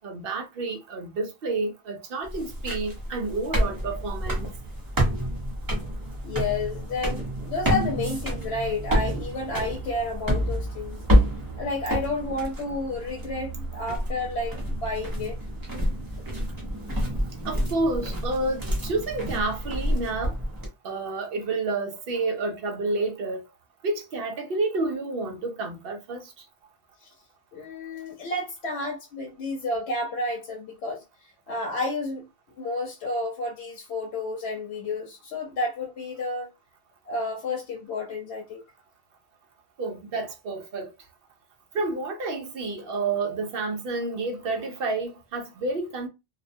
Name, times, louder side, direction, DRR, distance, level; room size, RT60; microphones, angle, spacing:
voice 1, 0.0-4.5 17.4-20.4 20.8-23.4 23.8-26.3 39.8-40.9 41.7-46.1, right 3 dB, 65° right, 0.7 m, -29 dB
sound 1, 2.2-20.7, equal, 25° right, 0.6 m, -28 dB
voice 2, 6.2-11.0 11.6-15.4 27.0-27.1 27.5-31.0 31.5-36.5 37.1-38.7, left 2 dB, 90° left, 0.9 m, -31 dB
2.3 x 2.1 x 2.6 m
omnidirectional pair, 1.1 m